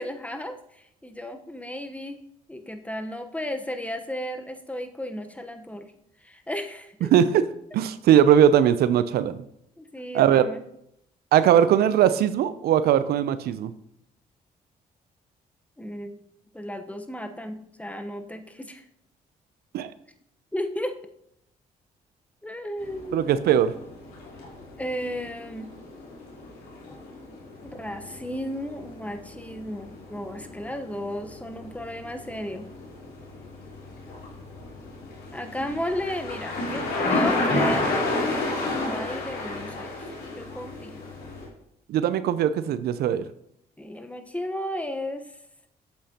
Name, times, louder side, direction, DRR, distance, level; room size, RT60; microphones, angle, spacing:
voice 1, 0.0-2.2 2.5-5.9 6.2-7.1 9.8-10.6 15.8-16.2 16.5-18.8 20.5-21.0 22.4-23.2 24.8-25.7 27.6-32.7 35.3-40.1 40.4-41.0 43.8-45.4, equal, 10° left, 6 dB, 1.0 m, -34 dB
voice 2, 7.0-7.4 7.7-9.4 10.1-10.4 11.3-13.7 19.7-19.9 23.1-23.7 41.9-43.2, right 10 dB, 75° right, 14 dB, 0.5 m, -20 dB
sound 1, 22.8-41.5, left 2 dB, 85° left, 3.2 m, -32 dB
8.4 x 7.6 x 2.9 m, 0.74 s
supercardioid pair, 65°, 16 cm